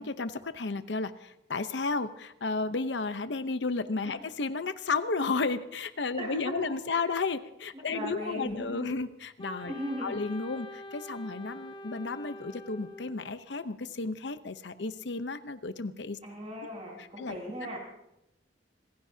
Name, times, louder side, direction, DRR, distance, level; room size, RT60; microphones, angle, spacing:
voice 1, 0.0-9.7 10.0-16.2 17.2-17.4, left 3 dB, 85° left, 11 dB, 0.8 m, -33 dB
voice 2, 6.2-7.1 7.7-8.9 9.7-10.2 16.2-17.8, equal, 35° right, -2 dB, 6.0 m, -38 dB
Wind instrument woodwind instrument, 9.4-13.4, left 1 dB, 25° left, 1.1 m, -45 dB
26.5 x 15.5 x 2.8 m, 0.85 s
head